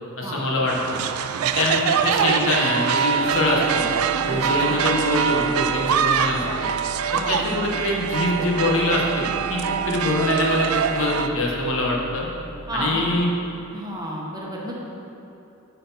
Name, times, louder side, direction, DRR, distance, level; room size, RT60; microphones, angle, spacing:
voice 1, 0.2-1.0 1.5-3.9 4.2-6.7 7.1-9.2 9.5-12.3 12.7-13.3, left 2 dB, 65° left, -2 dB, 1.0 m, -24 dB
sound 1, 0.7-11.3, right 7 dB, 85° right, 0.3 m, -24 dB
sound 2, 3.2-13.2, right 1 dB, 15° left, 1.0 m, -39 dB
voice 2, 12.7-13.0 13.7-14.8, right 1 dB, 20° right, -3 dB, 1.0 m, -31 dB
9.5 x 4.1 x 4.1 m, 2.9 s
head